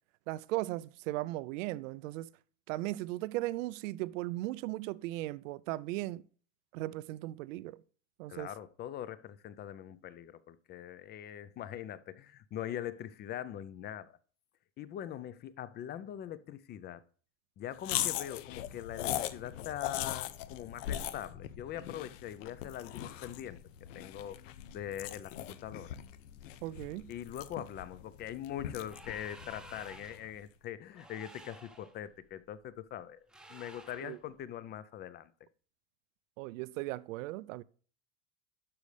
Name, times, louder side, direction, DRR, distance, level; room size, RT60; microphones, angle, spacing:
voice 1, 0.3-2.3 2.7-6.2 6.7-7.8 8.2-8.5 26.6-27.1 34.0-34.2 36.4-37.6, right 17 dB, 85° right, 0.5 m, -37 dB
voice 2, 8.3-14.2 14.8-17.0 17.6-23.6 23.9-26.0 27.1-35.3, left 11 dB, 30° left, 0.4 m, -42 dB
sound 1, 17.8-30.3, left 12 dB, 85° left, 0.7 m, -40 dB
sound 2, 28.8-30.3 30.9-31.9 33.3-34.2, right 1 dB, ahead, 0.7 m, -53 dB
11.5 x 5.3 x 3.3 m
supercardioid pair, 130°, 38 cm